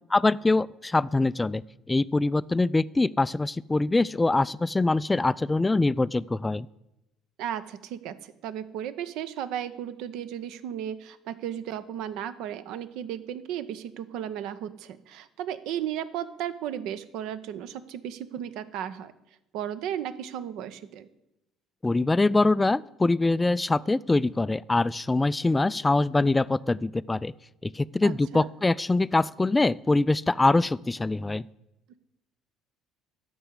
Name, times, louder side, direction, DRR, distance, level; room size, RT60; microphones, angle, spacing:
voice 1, 0.1-1.6 1.9-6.7 21.8-27.3 27.6-31.4, left 2 dB, 15° left, 19 dB, 0.3 m, -24 dB
voice 2, 7.4-19.1 19.5-21.1 28.0-28.5, right 10 dB, 60° right, 13 dB, 0.7 m, -35 dB
13.5 x 5.5 x 8.2 m, 0.91 s
figure-of-eight pair, 55°, 0 cm